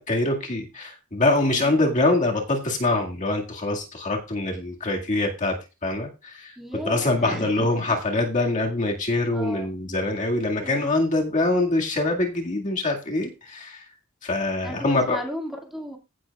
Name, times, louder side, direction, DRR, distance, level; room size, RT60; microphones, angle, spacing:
voice 1, 0.0-6.6 6.9-13.9 14.2-15.2, left 2 dB, 35° left, 0 dB, 2.0 m, -24 dB
voice 2, 1.5-1.8 6.6-7.9 9.3-9.8 10.6-10.9 14.6-16.0, equal, ahead, 0 dB, 2.2 m, -35 dB
16.0 x 7.6 x 2.4 m, 0.27 s
head